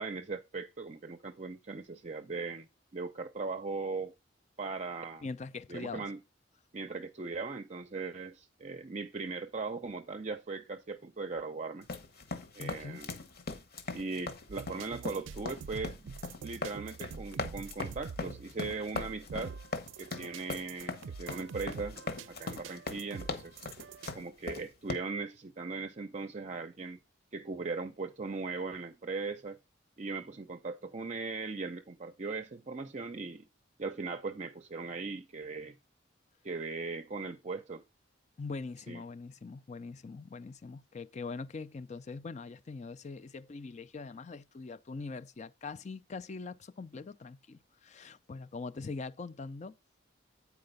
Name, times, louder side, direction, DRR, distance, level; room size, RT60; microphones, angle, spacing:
voice 1, 0.0-4.1 4.6-5.2 5.7-6.2 6.7-11.9 12.5-13.2 13.9-16.1 16.4-19.6 20.0-22.0 22.3-23.6 24.1-27.0 27.3-29.6 30.0-33.5 33.8-35.7 36.4-37.8 38.9-39.0, right 4 dB, 40° right, 0.5 m, -39 dB
voice 2, 5.2-6.1 12.6-13.0 38.4-49.7, left 4 dB, 35° left, 0.4 m, -42 dB
sound 1, 11.8-24.9, left 3 dB, 50° left, 1.1 m, -40 dB
sound 2, 14.5-24.1, right 5 dB, 90° right, 0.4 m, -46 dB
8.8 x 4.7 x 5.1 m
head